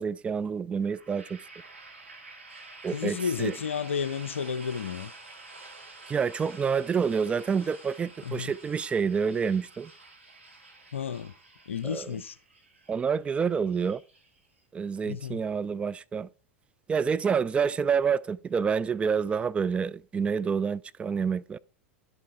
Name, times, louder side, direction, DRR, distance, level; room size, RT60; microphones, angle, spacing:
voice 1, 0.0-1.4 2.8-3.5 6.1-9.9 11.8-12.2 12.9-14.0 14.7-16.3 16.9-21.6, right 6 dB, 15° right, 0.3 m, -28 dB
sound 1, 0.8-14.6, right 3 dB, 75° right, 2.6 m, -49 dB
voice 2, 2.9-5.1 8.2-8.5 10.9-11.3 11.7-12.4 15.0-15.4, left 7 dB, 75° left, 0.4 m, -32 dB
11.0 x 8.4 x 3.5 m
figure-of-eight pair, 85°, 7 cm